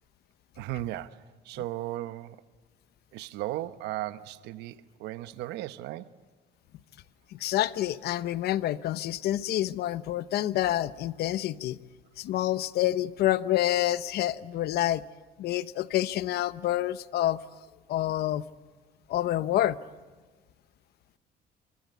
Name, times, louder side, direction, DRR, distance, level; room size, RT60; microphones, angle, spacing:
voice 1, 0.6-2.4 3.1-6.1, right 15 dB, 90° right, 1.0 m, -36 dB
voice 2, 7.3-11.8 12.2-15.0 15.4-17.4 17.9-18.4 19.1-19.8, left 13 dB, 70° left, 1.0 m, -28 dB
25.5 x 24.5 x 8.1 m
cardioid pair, 110°, 17 cm